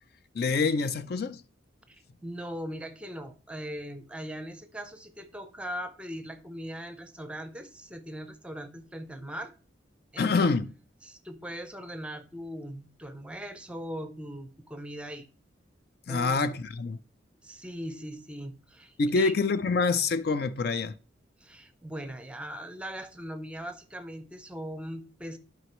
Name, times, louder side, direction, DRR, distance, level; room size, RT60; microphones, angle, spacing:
voice 1, 0.3-1.4 10.2-10.7 16.1-17.0 19.0-21.0, left 4 dB, 55° left, 0.4 m, -26 dB
voice 2, 1.9-9.5 10.1-10.5 11.0-15.3 16.1-16.4 17.4-19.3 21.4-25.4, equal, 5° right, 0.6 m, -40 dB
11.0 x 5.2 x 3.0 m
head